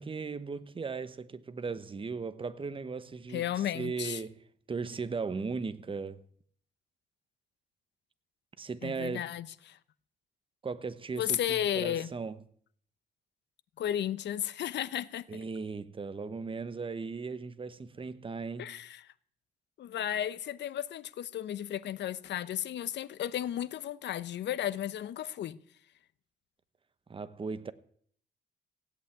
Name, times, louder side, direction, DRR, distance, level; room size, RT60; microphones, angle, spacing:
voice 1, 0.0-4.4 4.7-6.3 8.6-9.2 10.6-12.4 15.3-18.8 27.1-27.7, right 4 dB, 30° right, 1.0 m, -37 dB
voice 2, 3.3-4.2 8.8-9.8 11.1-12.1 13.8-15.3 18.6-19.1 19.8-25.6, left 11 dB, 70° left, 0.8 m, -34 dB
16.5 x 8.3 x 8.8 m
cardioid pair, 95°, 19 cm